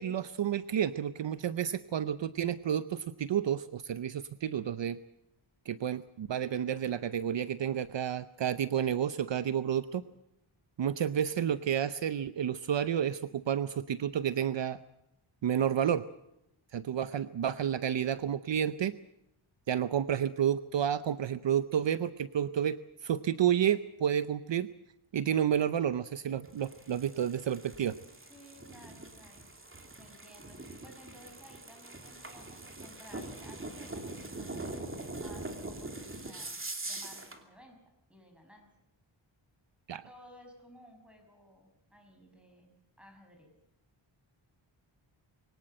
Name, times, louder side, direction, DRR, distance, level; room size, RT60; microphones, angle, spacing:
voice 1, 0.0-5.0 5.7-10.0 10.8-14.8 15.4-16.0 16.7-18.9 19.7-24.7 25.1-28.0 39.9-40.0, right 9 dB, 60° right, 13 dB, 0.7 m, -30 dB
sound 1, 26.4-37.4, right 2 dB, 25° right, 2.7 m, -43 dB
voice 2, 28.3-29.5 30.0-36.6 36.9-37.8 38.1-38.7 40.1-43.5, equal, ahead, 3 dB, 5.9 m, -56 dB
23.5 x 18.0 x 7.8 m, 0.83 s
wide cardioid pair, 130°, 49 cm